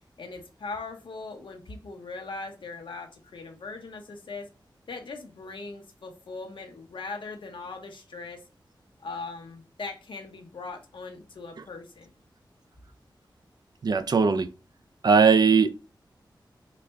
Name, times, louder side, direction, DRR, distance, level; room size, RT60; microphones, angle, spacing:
voice 1, 0.2-4.5 4.9-8.4 9.0-12.1, left 3 dB, 80° left, 0.8 m, -40 dB
voice 2, 13.8-14.5 15.0-15.7, right 5 dB, 55° right, 0.4 m, -19 dB
4.0 x 2.2 x 3.4 m
wide cardioid pair, 85°, 8 cm